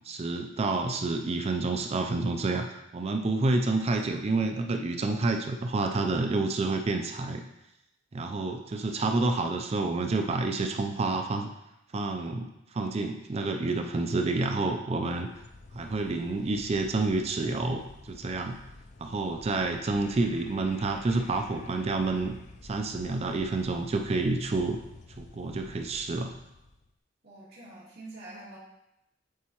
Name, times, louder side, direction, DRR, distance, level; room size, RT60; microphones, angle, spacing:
voice 1, 0.0-7.4 8.1-11.5 11.9-15.3 15.7-18.6 19.0-22.3 22.6-24.8 25.2-26.3, right 3 dB, 35° right, 5 dB, 0.4 m, -29 dB
sound 1, 15.0-26.9, left 3 dB, 40° left, 0.4 m, -50 dB
voice 2, 27.2-28.6, right 2 dB, 60° right, -9 dB, 2.1 m, -46 dB
8.2 x 4.2 x 2.9 m, 0.87 s
head